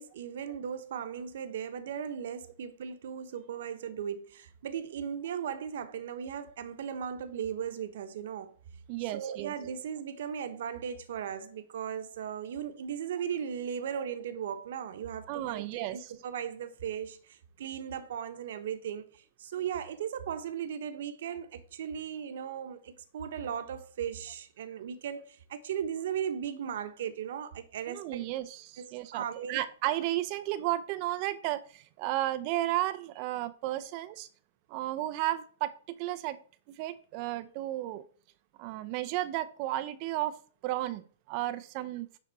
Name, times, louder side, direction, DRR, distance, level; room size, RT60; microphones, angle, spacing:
voice 1, 0.0-8.5 9.1-28.2 28.8-29.6, right 8 dB, 70° right, 1.2 m, -37 dB
voice 2, 8.9-9.5 15.3-16.0 27.9-34.3 34.7-36.4 36.7-38.0 38.6-40.3 40.6-42.1, right 15 dB, 45° right, 0.6 m, -33 dB
10.5 x 4.1 x 4.2 m
hypercardioid pair, 140°, 0 cm